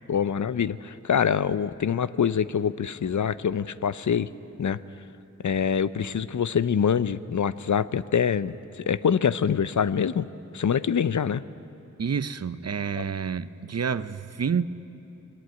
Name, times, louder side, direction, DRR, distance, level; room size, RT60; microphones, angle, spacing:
voice 1, 0.1-4.3 4.6-4.8 5.4-10.3 10.5-11.4 13.0-13.1, left 7 dB, 75° left, 16 dB, 0.6 m, -25 dB
voice 2, 12.0-14.7, right 6 dB, 55° right, 15 dB, 0.7 m, -28 dB
21.5 x 19.0 x 9.4 m, 2.8 s
wide cardioid pair, 50°, 30 cm